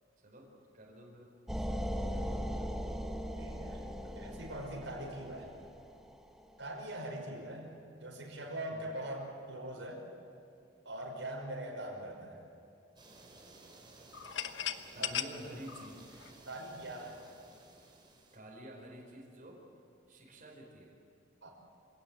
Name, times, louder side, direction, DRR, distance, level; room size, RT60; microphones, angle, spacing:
voice 1, 0.7-1.3 1.5-1.6 2.0-2.7 7.2-7.5 8.7-8.9 14.9-16.0 18.3-19.6 20.1-21.0, right 1 dB, 45° right, -2 dB, 4.9 m, -50 dB
sound 1, 1.5-6.3, equal, 5° right, 1.2 m, -39 dB
voice 2, 3.4-5.5 6.6-10.0 10.9-12.4 15.0-15.1 16.5-17.2 21.4-21.5, right 1 dB, 80° right, -1 dB, 5.5 m, -42 dB
sound 2, 13.0-18.4, right 2 dB, 25° right, 4.1 m, -57 dB
cups in the sink, 14.1-16.9, left 9 dB, 75° left, 1.1 m, -38 dB
27.0 x 17.0 x 9.0 m, 2.5 s
head